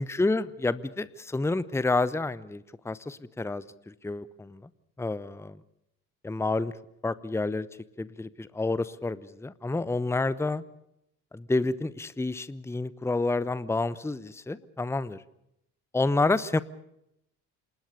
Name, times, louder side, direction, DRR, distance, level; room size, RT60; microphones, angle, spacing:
voice 1, 0.0-4.6 5.0-5.3 6.2-6.7 7.0-7.7 8.0-10.6 11.3-15.2 15.9-16.6, left 3 dB, 5° left, 18 dB, 0.9 m, -29 dB
27.0 x 20.0 x 6.7 m, 0.79 s
figure-of-eight pair, 50°, 47 cm